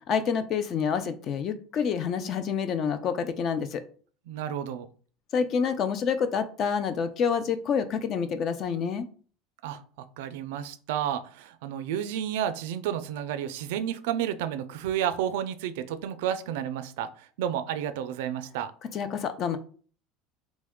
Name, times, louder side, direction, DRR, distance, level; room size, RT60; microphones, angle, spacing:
voice 1, 0.1-3.8 5.3-9.1 18.9-19.6, left 6 dB, 35° left, 11 dB, 0.3 m, -28 dB
voice 2, 4.3-4.9 9.6-18.7, right 10 dB, 80° right, 11 dB, 0.3 m, -31 dB
3.0 x 2.3 x 3.5 m, 0.42 s
cardioid pair, 160°, 0 cm